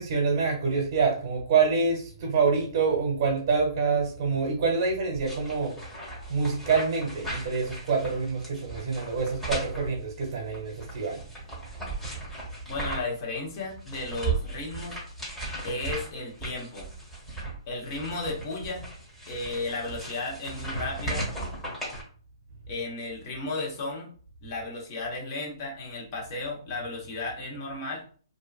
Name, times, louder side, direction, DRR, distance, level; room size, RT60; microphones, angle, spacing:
voice 1, 0.0-5.7 6.3-11.2, right 5 dB, 50° right, -2 dB, 1.0 m, -26 dB
sound 1, 5.1-13.2 13.5-22.0, right 2 dB, 10° left, 1.1 m, -37 dB
voice 2, 12.7-15.0 15.6-16.9 17.7-18.8 19.3-21.3 22.7-24.1 24.4-28.0, left 2 dB, 45° left, -2 dB, 1.1 m, -34 dB
2.7 x 2.4 x 2.4 m, 0.43 s
hypercardioid pair, 135°, 3 cm